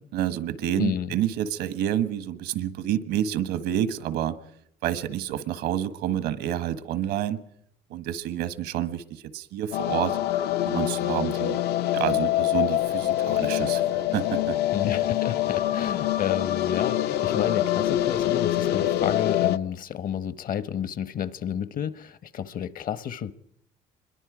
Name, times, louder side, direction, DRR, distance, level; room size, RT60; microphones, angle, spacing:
voice 1, 0.0-4.4 4.8-7.4 7.9-10.2 10.7-11.6 11.9-14.6, right 11 dB, 85° right, 1.3 m, -28 dB
voice 2, 0.8-1.1 14.7-23.3, left 9 dB, 55° left, 1.0 m, -31 dB
sound 1, 9.7-19.6, left 13 dB, 75° left, 0.7 m, -25 dB
26.0 x 22.0 x 4.9 m
cardioid pair, 110°, 17 cm